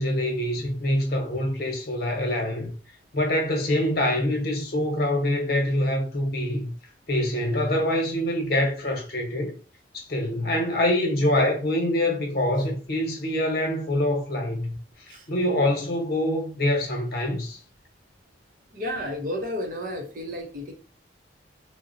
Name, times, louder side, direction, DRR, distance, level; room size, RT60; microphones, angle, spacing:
voice 1, 0.0-2.7 3.1-6.7 7.1-9.5 9.9-14.7 15.3-17.6, left 1 dB, 55° left, 0.9 m, -25 dB
voice 2, 18.7-20.7, left 1 dB, 50° right, 0.7 m, -32 dB
3.9 x 2.1 x 2.5 m
head